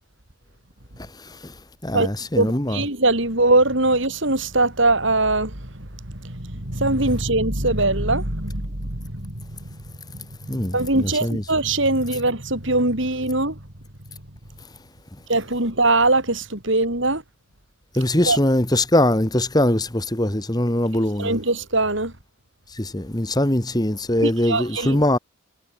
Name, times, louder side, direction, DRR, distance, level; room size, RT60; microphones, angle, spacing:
voice 1, 1.8-2.8 10.5-11.4 18.0-21.4 22.7-25.2, left 1 dB, 20° left, 1.8 m, -22 dB
voice 2, 2.4-9.8 10.1-13.6 15.3-17.2 18.3-18.4 21.2-22.1 24.2-25.0, right 2 dB, 55° right, 4.6 m, -22 dB
head